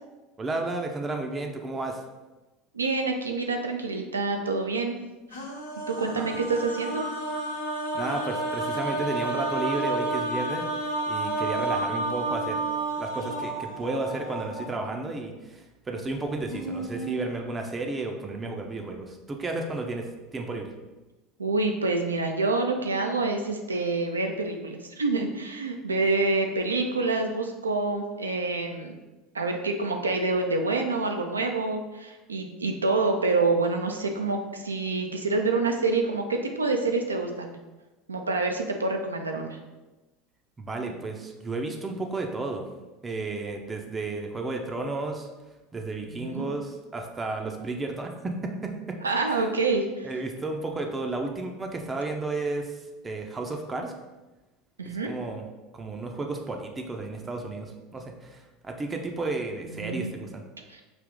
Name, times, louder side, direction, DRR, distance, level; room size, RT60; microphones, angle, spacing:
voice 1, 0.4-2.0 6.2-6.3 7.9-10.6 11.1-12.7 13.0-20.1 20.3-20.7 40.6-42.7 43.0-45.3 45.7-49.0 50.0-52.8 53.0-53.9 55.1-55.5 55.7-60.4, right 2 dB, 20° right, 2 dB, 0.5 m, -32 dB
voice 2, 2.7-5.0 5.9-7.1 21.4-28.9 29.3-37.5 38.1-39.6 46.1-46.5 49.0-50.1 54.8-55.1 59.7-60.1 60.7-60.8, right 3 dB, 80° right, 4 dB, 0.4 m, -27 dB
sound 1, 5.3-14.9 16.1-16.2 16.4-17.2, right 2 dB, 80° left, 0.9 m, -31 dB
5.0 x 2.7 x 3.7 m, 1.1 s
figure-of-eight pair, 70°, 0 cm